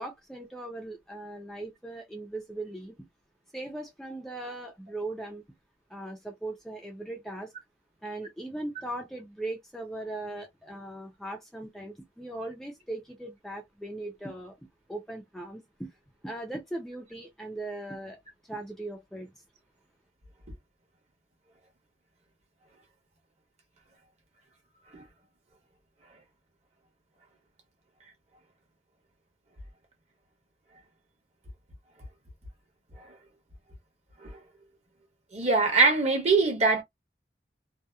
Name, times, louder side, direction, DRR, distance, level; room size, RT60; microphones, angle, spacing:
voice 1, 0.0-2.9 3.5-5.4 5.9-7.5 8.0-14.5 14.9-15.9 16.2-19.3, right 2 dB, ahead, 0.4 m, -39 dB
voice 2, 35.3-36.8, right 3 dB, 40° right, 1.0 m, -23 dB
2.7 x 2.0 x 2.3 m
head